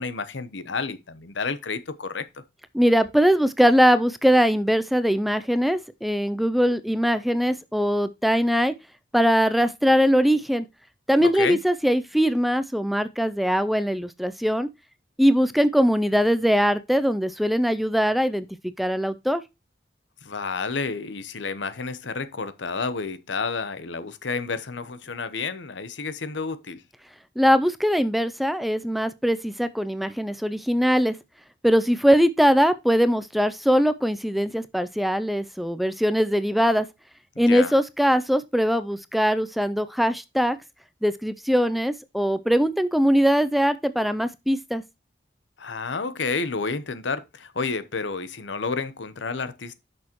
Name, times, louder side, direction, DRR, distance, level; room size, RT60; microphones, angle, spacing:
voice 1, 0.0-2.4 11.2-11.6 20.2-26.8 37.3-37.7 45.6-49.8, left 4 dB, 85° left, 0.9 m, -30 dB
voice 2, 2.7-8.7 9.1-10.7 11.1-14.7 15.2-18.5 18.8-19.4 27.4-31.2 31.6-36.9 37.4-40.6 41.0-44.8, equal, ahead, 0.4 m, -21 dB
10.5 x 6.3 x 3.0 m
head